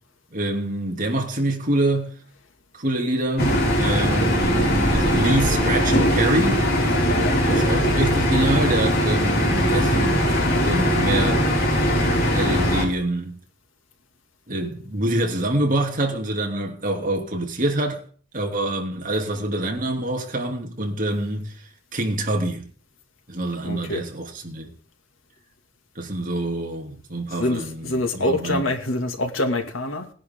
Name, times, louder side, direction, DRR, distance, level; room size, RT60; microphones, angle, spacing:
voice 1, 0.3-2.1 2.8-6.7 7.5-11.5 12.3-13.4 14.5-18.0 18.3-21.5 21.9-22.7 23.3-24.7 26.0-28.6, right 1 dB, 45° right, 3.0 m, -26 dB
sound 1, 3.4-12.8, equal, 50° left, 5.7 m, -20 dB
voice 2, 23.6-24.0 27.4-30.1, left 2 dB, 85° left, 2.6 m, -25 dB
19.5 x 10.5 x 3.8 m
head